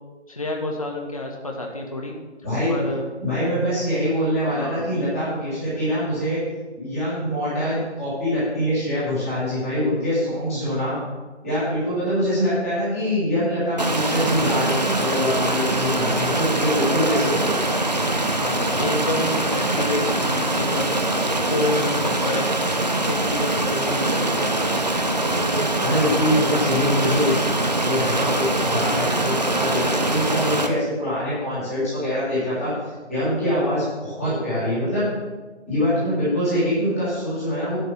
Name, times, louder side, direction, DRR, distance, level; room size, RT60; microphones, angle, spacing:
voice 1, 0.3-2.1 2.7-3.0 4.5-4.9 18.4-20.9 21.4-22.4 23.0-24.8, left 2 dB, 30° left, 1 dB, 1.0 m, -29 dB
voice 2, 2.4-2.9 3.2-6.4 6.7-11.0 11.4-17.7 25.8-27.4 27.8-32.7 33.1-35.0 35.7-37.8, equal, ahead, -25 dB, 2.1 m, -24 dB
Stream, 13.8-30.7, right 2 dB, 35° right, 0.8 m, -23 dB
11.0 x 5.3 x 7.7 m, 1.3 s
figure-of-eight pair, 175°, 34 cm